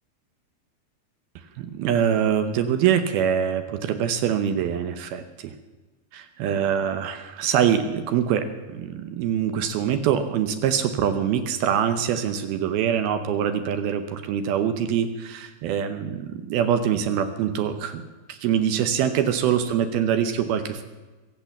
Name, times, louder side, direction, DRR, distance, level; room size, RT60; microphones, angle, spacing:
voice 1, 1.6-5.5 6.1-18.0 18.3-20.8, right 9 dB, 75° right, 9 dB, 2.4 m, -24 dB
23.0 x 8.5 x 7.2 m, 1.2 s
omnidirectional pair, 5.1 m